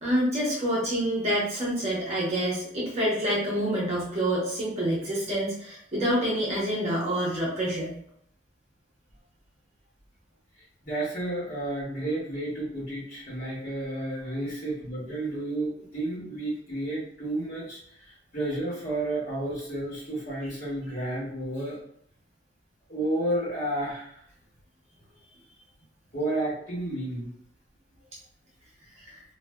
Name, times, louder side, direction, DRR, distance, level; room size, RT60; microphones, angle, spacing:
voice 1, 0.0-7.9, equal, 35° right, -6 dB, 0.8 m, -27 dB
voice 2, 10.8-17.8 18.1-21.8 22.9-24.1 26.1-27.3, right 1 dB, 45° left, -8 dB, 1.5 m, -31 dB
2.6 x 2.5 x 2.2 m, 0.66 s
head